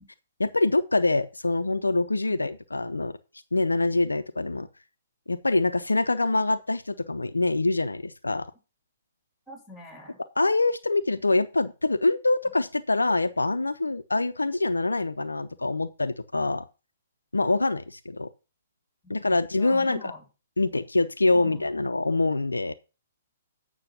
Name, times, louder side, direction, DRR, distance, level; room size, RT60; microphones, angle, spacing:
voice 1, 0.4-3.2 3.5-4.7 5.3-8.5 10.4-16.7 17.3-18.3 19.1-20.0 20.6-22.7, left 2 dB, 80° left, 11 dB, 0.5 m, -25 dB
voice 2, 9.5-10.2 19.0-19.1 19.5-20.2 21.3-21.7, left 1 dB, 10° left, 4 dB, 3.5 m, -44 dB
8.6 x 6.1 x 5.9 m, 0.31 s
figure-of-eight pair, 120°, 0 cm